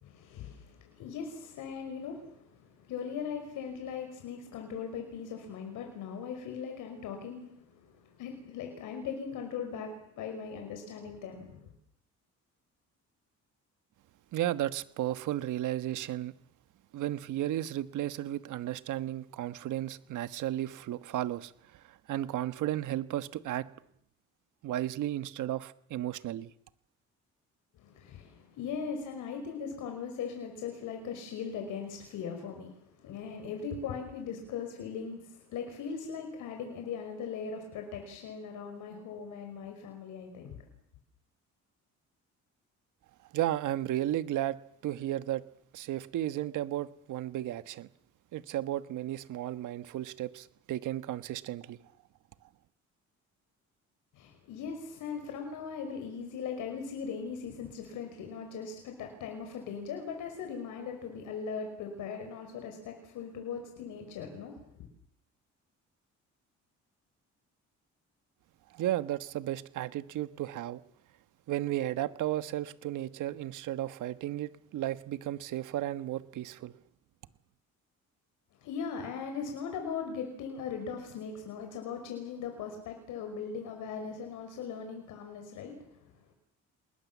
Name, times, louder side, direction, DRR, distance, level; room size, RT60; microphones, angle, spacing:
voice 1, 0.0-11.7 27.8-40.6 54.1-64.6 78.6-86.3, left 6 dB, 90° left, 4 dB, 5.4 m, -39 dB
voice 2, 14.3-16.3 16.9-23.7 24.6-26.5 43.3-45.4 45.7-47.9 48.3-51.8 68.7-70.8 71.5-76.7, right 13 dB, 80° right, 13 dB, 1.4 m, -34 dB
28.0 x 21.0 x 7.4 m, 0.67 s
cardioid pair, 90°, 30 cm